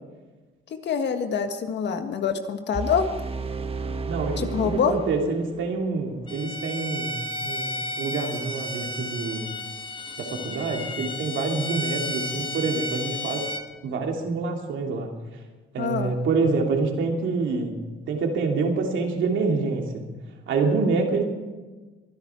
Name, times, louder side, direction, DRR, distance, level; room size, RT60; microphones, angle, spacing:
voice 1, 0.7-3.1 4.4-4.9 15.8-16.1, left 6 dB, 65° left, 7 dB, 1.6 m, -25 dB
sound 1, 2.7-5.8, right 4 dB, 30° right, 1.2 m, -32 dB
voice 2, 4.1-9.4 10.2-13.5 13.8-15.1 15.7-17.7 18.1-20.0 20.5-21.2, right 4 dB, 75° right, 2 dB, 3.0 m, -26 dB
Bowed string instrument, 6.3-13.7, left 1 dB, 25° left, 1.4 m, -33 dB
23.5 x 11.0 x 4.6 m, 1.2 s
cardioid pair, 90°, 20 cm